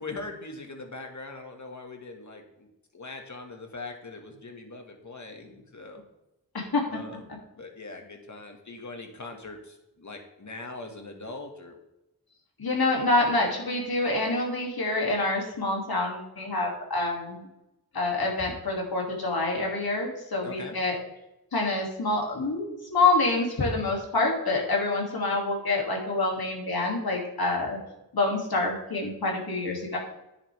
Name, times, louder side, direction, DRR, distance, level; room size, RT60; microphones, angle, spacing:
voice 1, 0.0-2.7 2.9-6.0 6.9-11.8 20.4-20.8, left 3 dB, 50° left, 3 dB, 1.9 m, -41 dB
voice 2, 12.6-17.4 17.9-20.9 21.5-27.8 28.1-30.0, left 2 dB, 75° left, -1 dB, 2.7 m, -27 dB
10.5 x 10.0 x 3.5 m, 0.91 s
wide cardioid pair, 85°, 37 cm